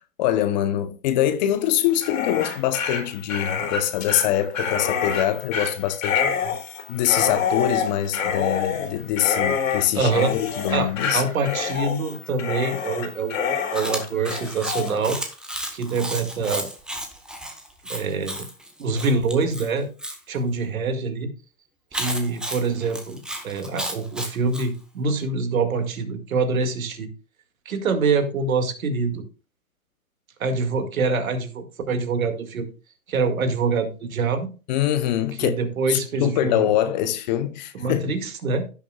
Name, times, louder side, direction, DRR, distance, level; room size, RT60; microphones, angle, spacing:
voice 1, 0.0-6.5 6.9-11.2 34.7-35.6 35.9-38.2, left 11 dB, 30° left, 0.7 m, -24 dB
Dog, 1.9-14.9, left 6 dB, 65° left, 3.5 m, -27 dB
voice 2, 9.9-10.4 10.7-15.2 15.7-16.7 17.8-18.5 18.8-19.9 20.3-21.3 21.9-27.1 27.7-29.2 30.4-32.7 33.1-34.5 35.4-36.7 37.7-38.7, right 4 dB, 70° right, 2.1 m, -25 dB
Chewing mastication, 13.7-20.2 21.9-24.7, right 1 dB, ahead, 1.0 m, -33 dB
16.0 x 6.4 x 2.3 m
hypercardioid pair, 135°, 43 cm